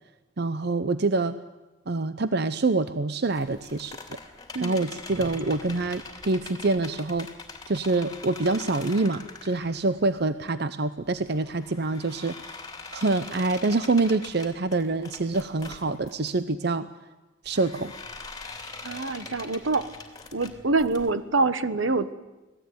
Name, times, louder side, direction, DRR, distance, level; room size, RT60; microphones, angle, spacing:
voice 1, 0.4-1.4 1.9-4.0 4.6-7.3 7.7-12.6 12.9-16.9 17.4-17.9, right 3 dB, 55° right, 12 dB, 0.8 m, -26 dB
sound 1, 3.3-10.5 11.0-16.3 17.5-21.1, left 3 dB, 20° left, 2.8 m, -43 dB
voice 2, 18.8-19.9 20.3-22.1, right 3 dB, 80° right, 13 dB, 1.3 m, -25 dB
25.5 x 17.5 x 9.5 m, 1.1 s
head